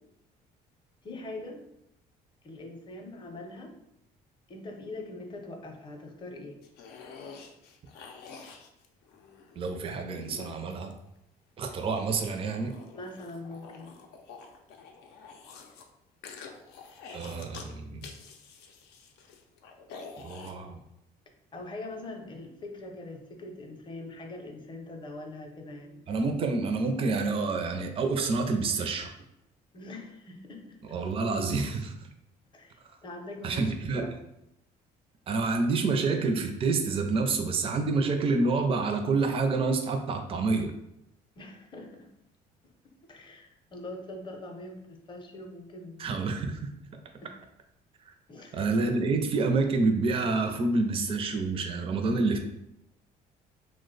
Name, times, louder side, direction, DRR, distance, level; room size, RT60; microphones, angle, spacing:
voice 1, 1.0-1.6 2.4-3.7 4.5-6.6 12.9-14.0 21.5-26.0 29.7-31.0 32.5-33.7 34.0-34.1 41.4-42.1 43.1-46.2 47.2-47.3 48.3-48.6, left 2 dB, 30° left, 3 dB, 0.6 m, -42 dB
sound 1, 6.6-9.6 10.2-11.2 11.7-15.8 16.2-17.7 18.0-20.5, left 5 dB, 90° left, 0.5 m, -48 dB
voice 2, 9.5-11.0 11.6-12.7 17.1-18.1 20.2-20.8 26.1-29.1 30.9-32.1 32.9-33.0 33.4-34.2 35.3-40.7 46.0-46.7 48.5-52.4, right 3 dB, 35° right, 5 dB, 0.4 m, -28 dB
2.9 x 2.1 x 3.8 m, 0.80 s
cardioid pair, 110°, 17 cm